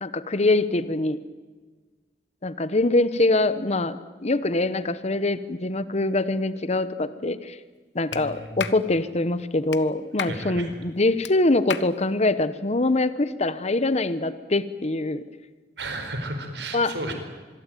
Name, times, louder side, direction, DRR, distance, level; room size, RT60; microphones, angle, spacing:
voice 1, 0.0-1.2 2.4-4.0 4.2-7.6 7.9-15.2 16.7-16.9, left 2 dB, 40° left, 14 dB, 1.1 m, -24 dB
Clapping, 8.1-8.2 8.6-8.8 9.7-9.8 10.2-10.4 11.2-11.3 11.7-11.9, left 7 dB, 75° left, 1.2 m, -32 dB
voice 2, 8.1-8.6 10.2-10.7 15.8-17.1, right 2 dB, 75° right, 6 dB, 4.6 m, -33 dB
25.5 x 22.5 x 9.2 m, 1.4 s
head